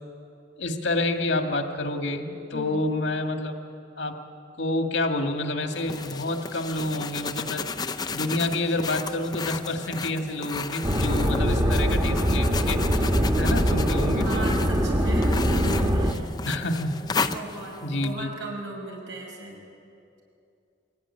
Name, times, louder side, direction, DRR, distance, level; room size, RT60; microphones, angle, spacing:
voice 1, 0.6-3.5 4.0-4.2 4.6-7.7 8.1-13.1 13.4-14.5 16.5-17.3 17.8-18.3, left 2 dB, 80° left, 5 dB, 1.9 m, -28 dB
voice 2, 2.5-2.8 14.2-16.2 16.6-16.7 17.2-19.6, right 2 dB, 80° right, 0 dB, 5.7 m, -37 dB
sound 1, 5.7-18.1, left 5 dB, 20° left, 0.6 m, -34 dB
sound 2, 10.8-16.1, equal, 25° right, 1.5 m, -23 dB
23.0 x 16.5 x 9.9 m, 2.6 s
head